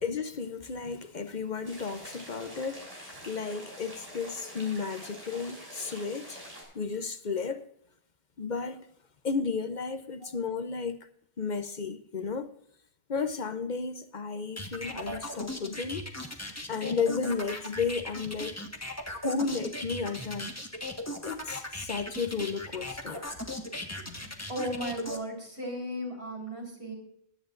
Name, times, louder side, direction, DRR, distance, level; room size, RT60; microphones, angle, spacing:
voice 1, 0.0-6.4 6.7-7.6 8.4-8.9 9.2-11.0 11.4-12.5 13.1-16.1 16.7-18.6 19.2-20.5 21.2-23.2, left 5 dB, 50° left, 0.8 m, -33 dB
sound 1, 1.6-6.6, equal, 35° right, 5.7 m, -46 dB
sound 2, 14.6-25.2, left 1 dB, 15° left, 1.4 m, -37 dB
voice 2, 24.5-26.9, equal, 85° right, 4.5 m, -35 dB
21.0 x 10.5 x 2.5 m
omnidirectional pair, 1.1 m